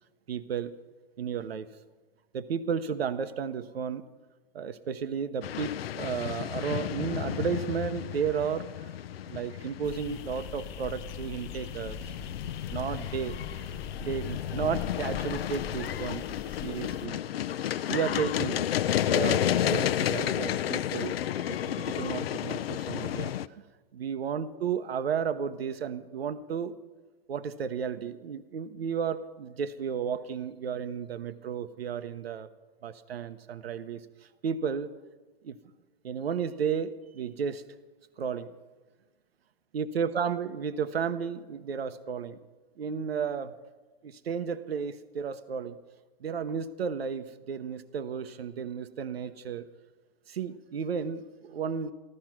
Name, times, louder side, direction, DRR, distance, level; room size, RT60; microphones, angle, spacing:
voice 1, 0.3-0.7 1.2-1.7 2.3-4.0 4.5-8.9 9.3-12.1 12.7-13.7 14.0-16.2 16.5-17.2 17.7-18.6 19.0-21.2 21.5-23.3 23.9-26.8 27.3-32.5 32.8-34.0 34.4-34.9 35.4-35.6 36.0-37.6 38.2-38.5 39.7-42.4 42.8-43.6 44.0-45.8 46.2-49.7 50.3-51.9, right 7 dB, 90° right, 12 dB, 0.9 m, -33 dB
sound 1, 5.4-23.5, left 11 dB, 80° left, 0.6 m, -32 dB
sound 2, 9.8-17.1, left 6 dB, 30° left, 0.7 m, -42 dB
14.5 x 13.0 x 6.0 m, 1.3 s
hypercardioid pair, 140°, 30 cm